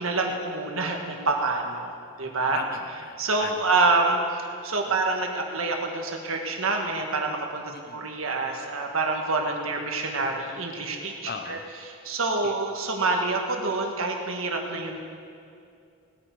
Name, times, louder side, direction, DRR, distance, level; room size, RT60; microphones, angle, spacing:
voice 1, 0.0-2.6 3.2-11.6 12.0-15.1, right 3 dB, 70° right, 2 dB, 1.6 m, -27 dB
voice 2, 2.5-3.6 4.9-5.0 7.7-8.1 11.3-11.7 12.4-12.7, left 5 dB, 50° left, 8 dB, 0.8 m, -38 dB
19.0 x 9.3 x 4.8 m, 2.4 s
head